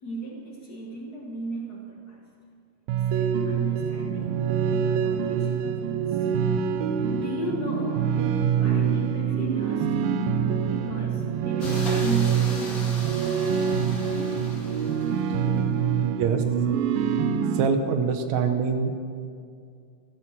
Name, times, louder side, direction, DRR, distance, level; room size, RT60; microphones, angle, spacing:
voice 1, 0.0-2.2 3.1-6.3 7.1-9.9 10.7-13.1 15.5-15.6, right 1 dB, 75° left, -1 dB, 0.9 m, -36 dB
sound 1, 2.9-17.7, right 7 dB, 85° right, 2.4 m, -25 dB
sound 2, 11.6-15.6, left 2 dB, 30° left, 2.2 m, -39 dB
voice 2, 17.5-18.9, right 5 dB, 70° right, 7 dB, 1.9 m, -24 dB
15.5 x 10.5 x 7.3 m, 2.3 s
omnidirectional pair, 4.0 m